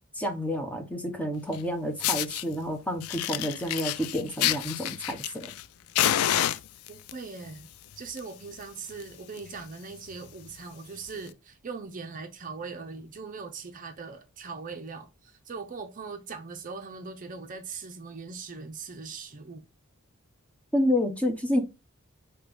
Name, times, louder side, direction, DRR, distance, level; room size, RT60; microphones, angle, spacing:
voice 1, 0.1-5.5 20.7-21.6, left 1 dB, 5° left, 0.8 m, -29 dB
Fire, 1.5-1.6 2.0-2.4 3.0-5.6 5.9-7.1 7.9-8.2 8.5-8.6 9.0-9.1 9.3-9.6 10.1-10.2 11.1-11.2, left 12 dB, 90° left, 0.3 m, -28 dB
voice 2, 6.9-7.7 8.0-19.6, right 4 dB, 40° right, 0.5 m, -40 dB
5.2 x 2.9 x 3.5 m
head